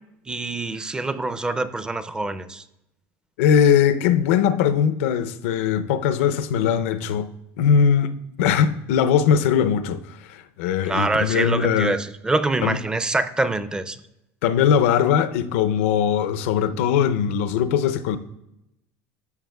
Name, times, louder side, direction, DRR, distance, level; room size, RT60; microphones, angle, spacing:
voice 1, 0.3-2.6 10.8-14.0, right 2 dB, 10° right, 0.4 m, -25 dB
voice 2, 3.4-7.3 7.6-8.1 8.4-10.0 10.3-12.0 12.6-12.8 14.4-18.2, left 8 dB, 90° left, 0.5 m, -20 dB
13.0 x 7.1 x 2.3 m
supercardioid pair, 125°, 7 cm